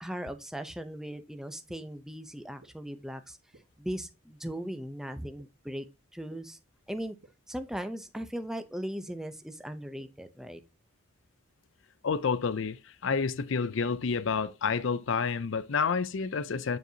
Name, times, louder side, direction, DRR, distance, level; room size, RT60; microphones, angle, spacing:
voice 1, 0.0-3.4 3.8-5.9 6.1-6.6 6.9-7.2 7.5-10.6, equal, ahead, 0.6 m, -38 dB
sound 1, 1.7-1.8 2.6-2.7 3.5-3.6 4.5-4.6 5.4-5.5 6.3-6.4 7.2-7.3 8.1-8.2 9.1-9.2 10.0-10.1, right 2 dB, 60° right, 1.3 m, -55 dB
voice 2, 12.0-16.8, left 5 dB, 65° left, 0.5 m, -29 dB
9.2 x 4.6 x 2.7 m
head